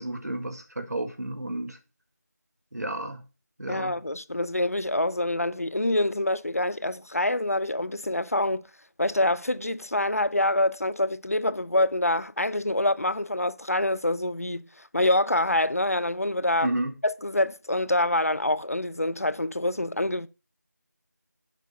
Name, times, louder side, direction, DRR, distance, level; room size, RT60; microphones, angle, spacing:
voice 1, 0.0-1.8 2.7-3.2 3.6-4.0 16.6-16.9, right 1 dB, 65° right, 1.7 m, -31 dB
voice 2, 3.7-8.7 9.0-14.7 14.9-16.7 17.0-20.3, left 1 dB, 55° left, 0.5 m, -26 dB
7.2 x 5.6 x 5.5 m
figure-of-eight pair, 175°, 10 cm